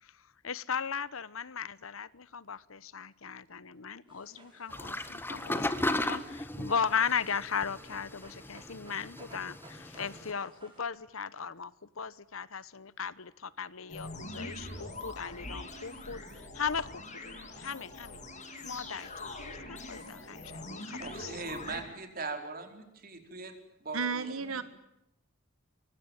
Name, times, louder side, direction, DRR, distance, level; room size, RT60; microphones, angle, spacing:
voice 1, 0.0-16.2 16.5-18.2 18.6-21.4, left 6 dB, 75° left, 18 dB, 1.0 m, -37 dB
Dog, 4.1-10.8, right 2 dB, 25° right, 6.8 m, -57 dB
sound 1, 4.7-10.3, left 1 dB, 10° left, 1.5 m, -36 dB
sound 2, 13.9-21.8, left 2 dB, 35° left, 6.9 m, -43 dB
voice 2, 21.0-23.5 23.8-24.6, right 3 dB, 45° right, 5 dB, 4.7 m, -40 dB
voice 3, 23.9-24.6, right 5 dB, 80° right, 12 dB, 1.6 m, -32 dB
24.5 x 24.0 x 9.2 m, 0.85 s
head